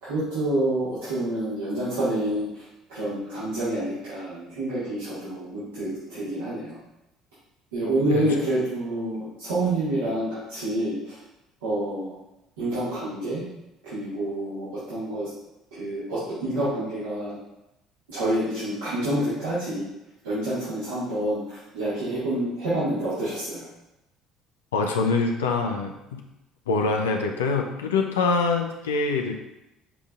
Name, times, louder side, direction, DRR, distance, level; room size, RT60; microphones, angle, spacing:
voice 1, 0.0-2.6 2.9-6.8 7.7-11.2 11.6-12.1 12.6-13.4 13.8-15.3 15.7-17.4 18.1-19.9 20.2-23.7, right 1 dB, 85° right, -13 dB, 1.7 m, -28 dB
voice 2, 24.7-26.2 26.7-29.3, left 4 dB, 85° left, 2 dB, 0.4 m, -24 dB
5.7 x 3.8 x 2.4 m, 0.90 s
hypercardioid pair, 60°, 0 cm